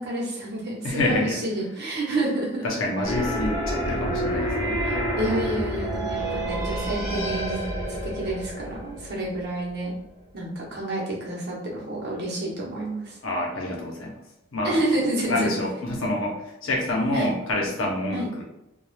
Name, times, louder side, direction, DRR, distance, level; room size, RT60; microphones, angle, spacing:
voice 1, 0.0-2.6 4.8-7.6 7.9-9.9 10.3-13.2 14.6-15.5 17.1-17.3 18.1-18.3, right 1 dB, 55° right, -3 dB, 0.8 m, -29 dB
voice 2, 0.8-1.4 2.6-4.8 13.2-14.2 14.5-14.8 15.3-18.4, left 1 dB, 70° left, -1 dB, 0.7 m, -27 dB
sound 1, 3.0-9.8, right 1 dB, 20° right, 0.7 m, -28 dB
2.3 x 2.3 x 3.1 m, 0.88 s
head